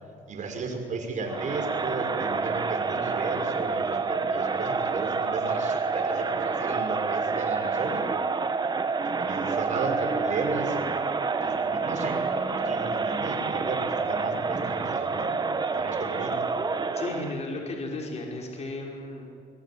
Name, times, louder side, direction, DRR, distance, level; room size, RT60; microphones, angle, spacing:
voice 1, 0.3-8.1 9.2-10.8 11.4-15.4 15.8-16.5, right 4 dB, 45° right, 3 dB, 6.0 m, -34 dB
Crowd, 1.3-17.4, right 4 dB, 25° right, 1.5 m, -28 dB
voice 2, 16.9-19.3, left 2 dB, 40° left, 0 dB, 5.6 m, -34 dB
23.0 x 23.0 x 9.0 m, 2.3 s
cardioid pair, 110°, 17 cm